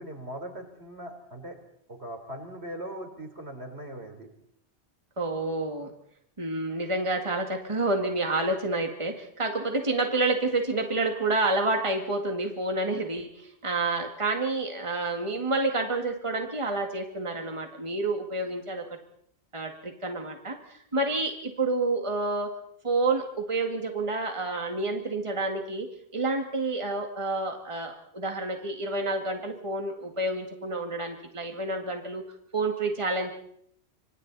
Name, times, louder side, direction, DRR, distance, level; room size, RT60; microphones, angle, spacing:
voice 1, 0.0-1.6 1.9-4.3, right 1 dB, 70° right, 4 dB, 4.3 m, -40 dB
voice 2, 5.2-5.9 6.4-18.8 19.5-22.5 22.8-25.9 26.1-32.2 32.5-33.3, right 2 dB, 25° right, 4 dB, 2.1 m, -29 dB
27.0 x 26.5 x 4.1 m, 0.70 s
omnidirectional pair, 1.1 m